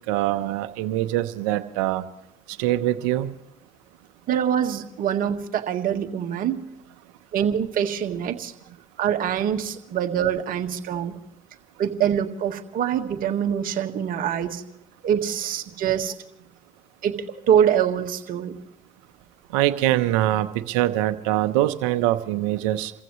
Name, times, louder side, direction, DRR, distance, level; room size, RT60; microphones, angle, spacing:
voice 1, 0.1-2.0 2.5-3.3 19.5-22.9, right 14 dB, 85° right, 10 dB, 0.9 m, -23 dB
voice 2, 4.3-6.6 7.3-8.5 9.0-11.2 11.8-14.6 15.0-16.1 17.0-18.5, right 9 dB, 55° right, 5 dB, 1.7 m, -24 dB
29.0 x 15.0 x 3.2 m, 0.78 s
supercardioid pair, 75°, 17 cm